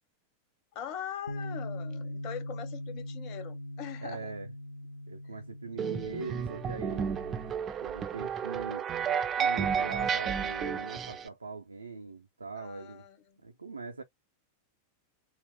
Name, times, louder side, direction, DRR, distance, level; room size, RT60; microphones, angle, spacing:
voice 1, 0.7-4.3 5.3-5.4 8.6-8.8 12.6-13.4, left 8 dB, 45° left, 1.5 m, -42 dB
Bass guitar, 1.3-7.5, left 1 dB, 85° left, 0.5 m, -41 dB
voice 2, 4.0-4.5 5.1-7.1 7.8-8.9 9.4-13.0 13.4-14.0, right 4 dB, 80° right, 0.5 m, -41 dB
sound 1, 5.8-11.3, right 7 dB, 25° right, 0.5 m, -32 dB
4.1 x 2.1 x 3.6 m
figure-of-eight pair, 90°, 0 cm